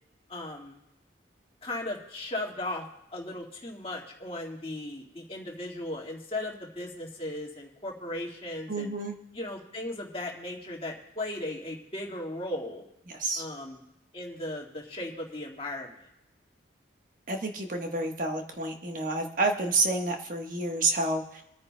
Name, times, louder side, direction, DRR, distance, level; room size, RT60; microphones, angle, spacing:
voice 1, 0.3-0.8 1.6-2.8 3.1-8.9 9.3-12.8 13.4-13.8 14.1-16.0, left 1 dB, 30° left, -1 dB, 1.9 m, -37 dB
voice 2, 8.7-9.2 13.1-13.4 17.3-21.4, right 2 dB, 45° right, 3 dB, 1.3 m, -29 dB
28.0 x 9.6 x 2.2 m, 0.87 s
head